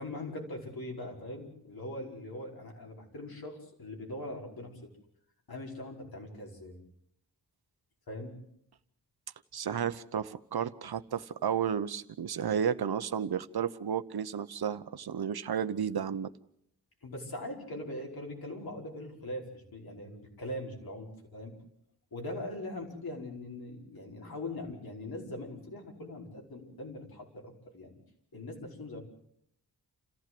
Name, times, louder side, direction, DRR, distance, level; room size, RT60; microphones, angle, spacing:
voice 1, 0.0-4.9 5.5-6.8 8.1-8.3 17.0-21.5 22.1-28.0 28.3-29.0, left 1 dB, 65° left, 0 dB, 5.2 m, -41 dB
voice 2, 9.5-16.3, right 8 dB, 70° right, 13 dB, 1.0 m, -32 dB
28.5 x 15.0 x 7.8 m, 0.72 s
wide cardioid pair, 125°, 39 cm